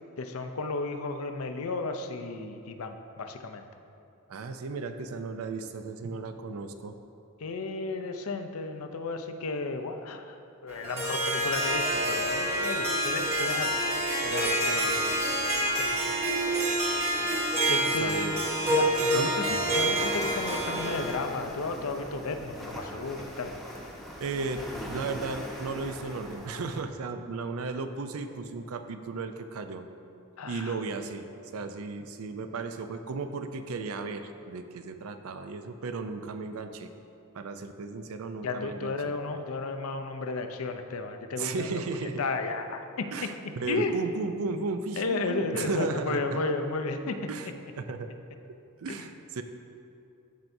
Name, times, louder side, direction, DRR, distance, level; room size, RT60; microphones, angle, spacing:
voice 1, 0.2-3.7 7.4-10.4 10.6-13.8 14.2-15.2 15.8-15.9 16.5-16.7 17.7-18.4 18.7-23.5 30.4-30.7 38.4-41.8 42.2-43.1 43.7-44.0 45.0-47.2, left 3 dB, 70° left, 6 dB, 0.5 m, -33 dB
voice 2, 4.3-7.0 17.8-18.4 19.1-19.3 24.2-29.8 30.5-36.9 37.3-38.9 41.4-42.2 43.1-46.4 47.3-48.1 48.8-49.4, right 4 dB, 70° right, 8 dB, 0.4 m, -35 dB
Harp, 10.7-21.2, right 1 dB, 30° right, 1.6 m, -27 dB
sound 1, 11.4-26.8, equal, ahead, 0.8 m, -42 dB
13.5 x 4.5 x 2.6 m, 2.6 s
head